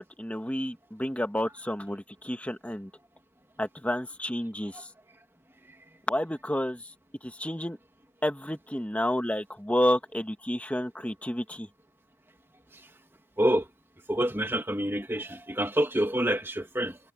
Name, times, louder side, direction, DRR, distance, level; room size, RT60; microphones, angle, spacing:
voice 1, 0.0-2.9 3.6-4.9 6.1-6.8 7.2-7.8 8.2-11.7, equal, 5° left, 1.5 m, -30 dB
voice 2, 14.1-17.0, right 1 dB, 10° right, 2.1 m, -27 dB
head